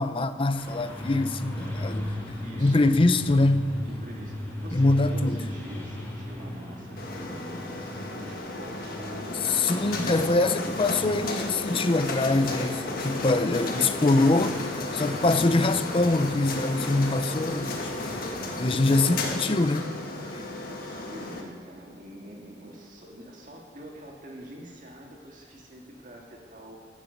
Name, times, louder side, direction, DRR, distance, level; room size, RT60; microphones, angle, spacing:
voice 1, 0.0-2.2 2.6-3.7 4.7-5.5 9.4-14.6 14.9-17.9 18.6-19.9, left 2 dB, 30° left, 0.5 m, -24 dB
sound 1, 0.5-19.2, left 1 dB, 15° left, 4.0 m, -38 dB
voice 2, 2.4-2.8 3.8-9.4 13.5-14.6 17.1-17.7 20.3-26.8, right 1 dB, 45° right, 2.2 m, -45 dB
sound 2, 7.0-21.4, left 2 dB, 55° left, 1.6 m, -33 dB
15.0 x 7.4 x 6.5 m
head